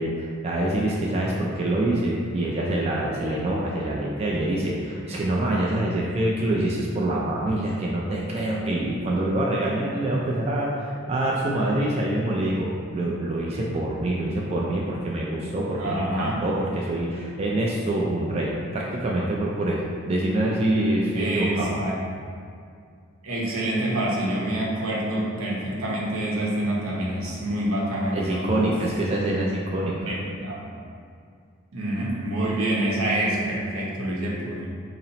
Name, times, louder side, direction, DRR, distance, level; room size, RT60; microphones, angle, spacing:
voice 1, 0.0-21.7 28.1-30.1, right 1 dB, 30° right, -4 dB, 0.3 m, -25 dB
voice 2, 15.8-16.4 21.2-22.0 23.2-28.7 30.1-30.6 31.7-34.7, right 1 dB, 80° right, -4 dB, 0.8 m, -27 dB
4.1 x 2.0 x 3.9 m, 2.2 s
head